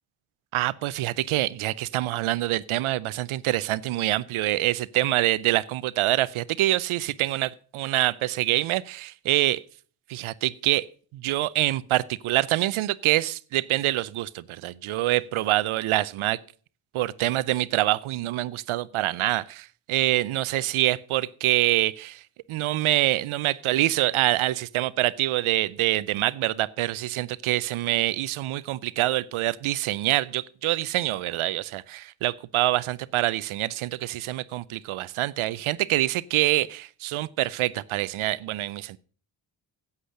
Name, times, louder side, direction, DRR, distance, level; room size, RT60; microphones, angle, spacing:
voice 1, 0.5-9.6 10.1-10.9 11.1-16.4 16.9-22.2 22.5-39.0, right 16 dB, 80° right, 0.6 m, -25 dB
8.4 x 8.0 x 6.4 m
cardioid pair, 60°, 48 cm